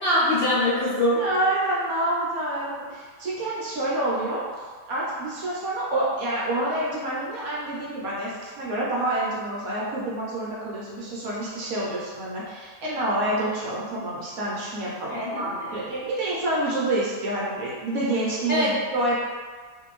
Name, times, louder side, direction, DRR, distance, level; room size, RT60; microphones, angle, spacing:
voice 1, 0.0-1.2 15.1-15.7 18.5-18.7, left 1 dB, 55° left, -9 dB, 0.7 m, -23 dB
voice 2, 1.1-4.4 4.9-19.2, right 1 dB, 70° right, -6 dB, 0.9 m, -28 dB
2.6 x 2.5 x 2.9 m, 1.5 s
omnidirectional pair, 1.8 m